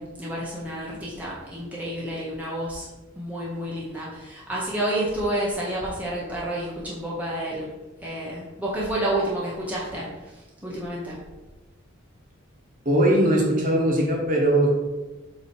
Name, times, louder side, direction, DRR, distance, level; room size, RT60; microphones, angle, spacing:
voice 1, 0.0-2.9 3.2-7.7 8.0-11.2, right 1 dB, 10° right, -6 dB, 1.0 m, -30 dB
voice 2, 12.8-14.7, right 1 dB, 40° right, -1 dB, 1.4 m, -20 dB
7.1 x 3.1 x 4.4 m, 1.2 s
head